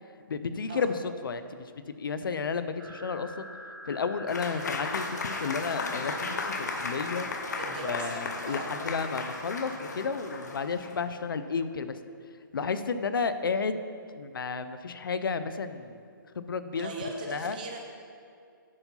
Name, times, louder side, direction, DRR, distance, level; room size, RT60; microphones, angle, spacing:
voice 1, 0.3-1.7 2.0-3.5 3.9-7.3 7.8-12.0 12.5-13.8 14.1-16.0 16.4-16.9 17.3-17.6, left 5 dB, 85° left, 11 dB, 0.6 m, -32 dB
sound 1, 2.8-9.8, right 2 dB, 70° right, 1.4 m, -48 dB
Applause / Crowd, 4.3-11.1, left 3 dB, 55° left, 0.9 m, -35 dB
voice 2, 7.6-8.8 16.7-17.8, right 2 dB, 25° right, 1 dB, 0.8 m, -39 dB
9.5 x 4.7 x 5.5 m, 2.3 s
hypercardioid pair, 180°, 11 cm